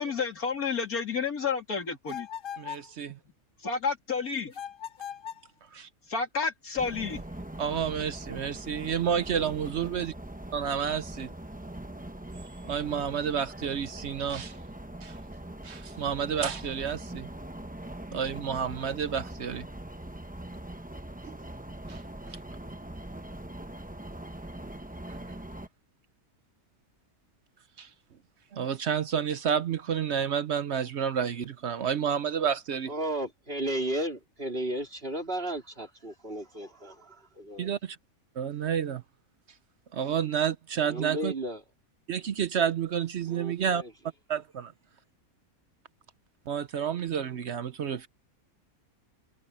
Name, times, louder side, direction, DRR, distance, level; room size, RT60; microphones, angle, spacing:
voice 1, 0.0-2.3 3.1-3.2 3.6-4.5 6.0-7.4, left 5 dB, 80° left, 3.4 m, -30 dB
sound 1, 2.1-2.9 4.5-5.5, left 9 dB, 50° left, 0.7 m, -39 dB
voice 2, 2.6-3.2 5.7-5.9 7.6-10.1 10.5-11.3 12.6-14.6 15.0-15.2 15.6-17.3 18.1-19.7 21.2-21.4 21.9-22.0 27.8-27.9 28.5-32.9 37.6-38.0 38.4-39.0 39.9-41.3 42.1-43.8 44.3-44.7 46.5-48.1, right 8 dB, 60° right, 0.9 m, -30 dB
sound 2, 6.8-25.7, right 1 dB, 5° right, 0.7 m, -42 dB
voice 3, 32.9-37.7 40.8-41.6 43.3-43.9, right 1 dB, 40° right, 4.1 m, -34 dB
omnidirectional pair, 1.5 m